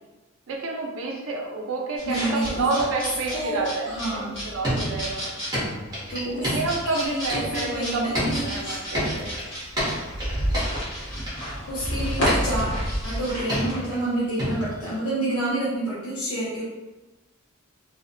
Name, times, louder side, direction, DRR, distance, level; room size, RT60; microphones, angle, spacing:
voice 1, 0.5-5.3 6.4-8.0 8.3-9.3, right 3 dB, 70° right, 0 dB, 0.5 m, -29 dB
sound 1, 2.0-13.9, equal, 60° left, 1.1 m, -31 dB
voice 2, 2.1-2.7 3.3-3.6 3.9-4.3 6.1-6.6 6.8-8.8 11.7-12.7 13.0-16.6, right 1 dB, 80° left, -8 dB, 0.6 m, -28 dB
sound 2, 4.6-7.8 8.1-11.3 12.3-12.9 13.5-14.1 14.4-14.9, equal, 20° right, 0.8 m, -29 dB
sound 3, 5.9-6.4 7.0-7.1 7.4-7.5 8.4-8.8 9.0-10.2 10.5-11.0 11.7-13.6, equal, 15° left, 0.5 m, -34 dB
2.4 x 2.1 x 2.5 m, 1.1 s
head